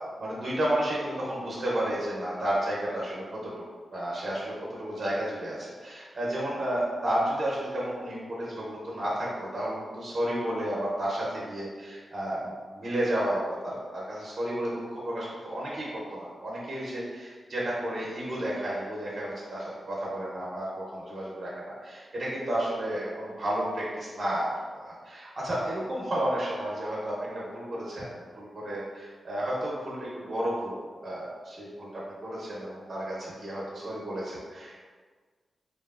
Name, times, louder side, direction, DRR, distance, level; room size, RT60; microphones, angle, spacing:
voice 1, 0.0-3.6 3.9-24.5 24.8-30.8 31.0-34.8, right 1 dB, 45° right, -6 dB, 0.6 m, -32 dB
2.9 x 2.3 x 2.3 m, 1.5 s
wide cardioid pair, 100°, 0 cm